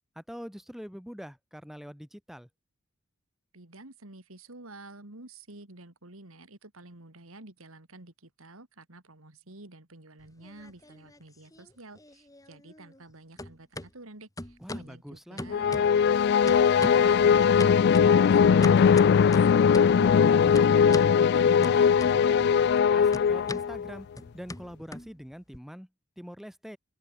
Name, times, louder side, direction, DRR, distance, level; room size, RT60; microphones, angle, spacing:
voice 1, 0.2-2.5 14.6-15.5 19.8-24.1 24.3-25.9 26.2-26.8, equal, ahead, 3.5 m, -44 dB
voice 2, 3.5-18.9 19.2-19.3, right 2 dB, 75° right, 2.9 m, -50 dB
sound 1, 10.2-11.2 11.5-13.1 13.4-13.9 14.4-14.9 15.4-16.2 16.5-17.2 17.6-20.0 20.6-21.2 21.6-22.5 22.7-25.6, left 1 dB, 15° left, 2.9 m, -40 dB
sound 2, 15.5-23.9, left 7 dB, 50° left, 0.3 m, -20 dB
open air
head